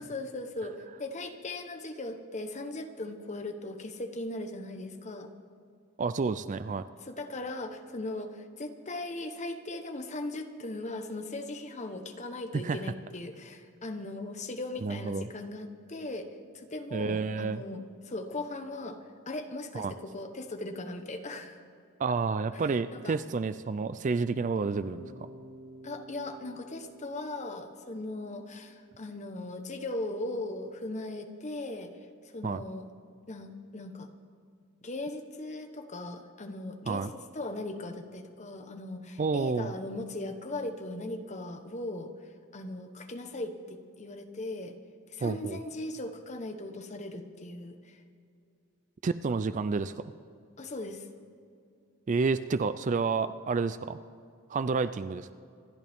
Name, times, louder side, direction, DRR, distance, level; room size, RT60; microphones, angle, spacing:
voice 1, 0.0-5.3 7.0-16.3 16.5-21.6 22.5-23.2 25.8-31.9 32.3-32.9 33.3-34.1 34.8-42.1 42.5-44.8 45.1-48.0 50.6-51.1, left 2 dB, 30° left, 6 dB, 1.0 m, -38 dB
voice 2, 6.0-6.9 12.5-12.8 14.8-15.3 16.9-17.6 19.7-19.9 22.0-25.1 32.4-32.6 36.9-37.1 39.2-39.7 45.2-45.6 49.0-50.1 52.1-54.0 54.5-55.3, right 4 dB, 35° right, 13 dB, 0.3 m, -30 dB
Bass guitar, 24.8-28.9, right 1 dB, 75° left, 2.0 m, -51 dB
26.5 x 12.0 x 3.6 m, 2.4 s
head